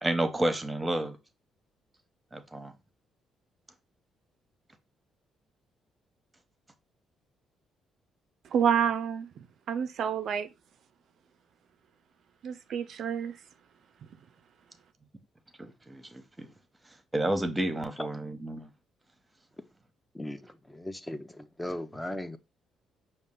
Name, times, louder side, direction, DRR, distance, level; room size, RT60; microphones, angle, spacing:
voice 1, 0.0-1.2 2.3-2.7 15.6-16.5 17.1-18.7, right 1 dB, 15° right, 0.9 m, -30 dB
voice 2, 8.5-9.3 9.7-10.5 12.4-13.4, right 8 dB, 65° right, 0.3 m, -28 dB
voice 3, 20.1-22.4, left 1 dB, 10° left, 0.6 m, -38 dB
5.2 x 2.4 x 3.7 m
supercardioid pair, 60°, 0 cm